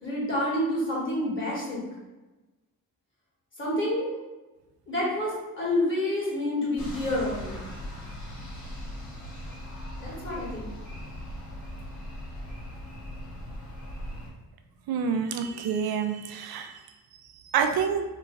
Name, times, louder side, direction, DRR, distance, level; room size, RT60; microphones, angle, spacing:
voice 1, 0.0-1.8 3.6-4.2 4.9-5.3 5.6-7.6 10.0-10.7, left 1 dB, 35° left, -7 dB, 1.5 m, -28 dB
sound 1, 6.8-14.3, equal, 50° left, 1.4 m, -39 dB
voice 2, 14.9-16.7 17.5-18.0, right 7 dB, 85° right, 6 dB, 0.5 m, -27 dB
3.0 x 2.3 x 3.8 m, 1.1 s
cardioid pair, 100°, 36 cm